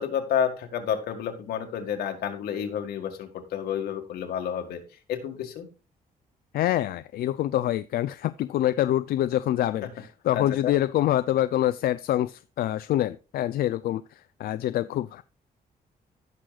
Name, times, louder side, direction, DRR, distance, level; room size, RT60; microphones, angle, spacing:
voice 1, 0.0-4.8 5.1-5.7 10.3-10.8, left 8 dB, 90° left, 5 dB, 1.8 m, -30 dB
voice 2, 6.5-15.2, left 13 dB, 70° left, 14 dB, 0.4 m, -26 dB
16.0 x 6.3 x 2.4 m, 0.33 s
cardioid pair, 155°, 16 cm